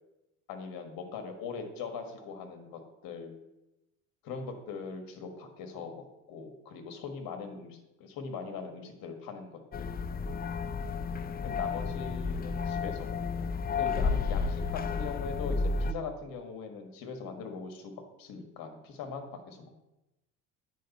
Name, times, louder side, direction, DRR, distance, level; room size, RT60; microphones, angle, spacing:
voice 1, 0.5-3.4 4.2-9.9 11.4-13.5 13.8-19.7, left 5 dB, 60° left, 5 dB, 1.7 m, -41 dB
sound 1, 9.7-15.9, left 4 dB, 25° left, 0.5 m, -32 dB
9.3 x 5.1 x 4.2 m, 0.94 s
hypercardioid pair, 65°, 39 cm